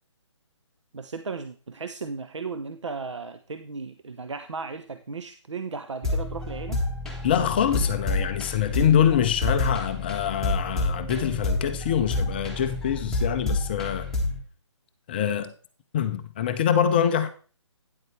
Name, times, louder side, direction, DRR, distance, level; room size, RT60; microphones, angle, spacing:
voice 1, 0.9-6.8, right 4 dB, 70° right, 0.7 m, -35 dB
sound 1, 6.0-14.4, left 2 dB, 5° left, 1.6 m, -29 dB
voice 2, 7.2-14.1 15.1-15.5 15.9-17.3, left 9 dB, 20° left, 0.5 m, -24 dB
9.5 x 7.9 x 3.3 m
figure-of-eight pair, 145°, 16 cm